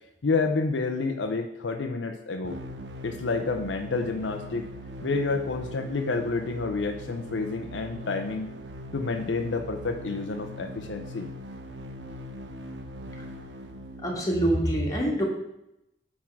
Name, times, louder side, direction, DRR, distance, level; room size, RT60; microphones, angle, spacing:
voice 1, 0.2-2.6 3.0-4.6 5.0-8.5 8.9-11.3 13.1-13.2, left 3 dB, 85° left, 5 dB, 0.7 m, -29 dB
sound 1, 2.4-14.4, left 1 dB, 70° right, 0.9 m, -41 dB
voice 2, 14.0-15.2, right 1 dB, 20° left, -2 dB, 1.8 m, -25 dB
8.5 x 3.7 x 6.0 m, 0.84 s
head